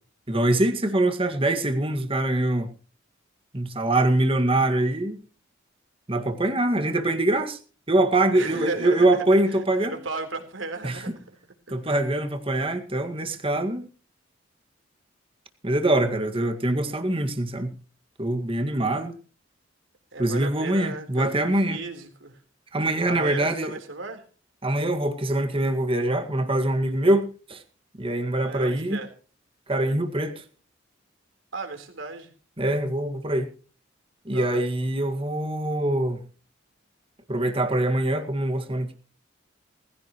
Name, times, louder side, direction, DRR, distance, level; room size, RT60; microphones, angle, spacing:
voice 1, 0.3-2.7 3.5-5.2 6.1-7.6 7.9-10.0 10.8-11.0 11.7-13.9 15.6-17.7 18.2-19.2 20.2-21.8 22.7-23.8 24.6-27.6 28.0-29.0 29.7-30.4 32.6-33.5 34.3-36.2 37.3-38.9, right 1 dB, 25° right, 1.9 m, -24 dB
voice 2, 8.3-11.4 11.9-12.0 20.1-22.4 23.1-24.2 28.4-29.1 31.5-32.3 34.3-34.6, right 3 dB, 80° right, 3.8 m, -35 dB
20.0 x 16.0 x 3.1 m
head